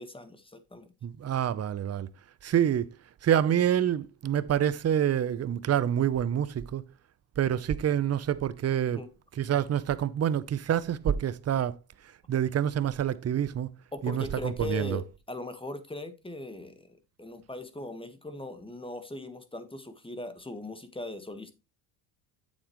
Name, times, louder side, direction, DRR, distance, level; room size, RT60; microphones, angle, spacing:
voice 1, 0.0-0.9 8.9-9.1 13.9-16.9 17.2-21.5, left 2 dB, 10° left, 1.5 m, -39 dB
voice 2, 1.0-2.1 2.4-2.9 3.2-6.8 7.4-9.0 9.4-11.8 12.3-13.7 14.0-15.0, right 9 dB, 35° right, 0.7 m, -27 dB
8.6 x 7.5 x 3.1 m
supercardioid pair, 75°, 47 cm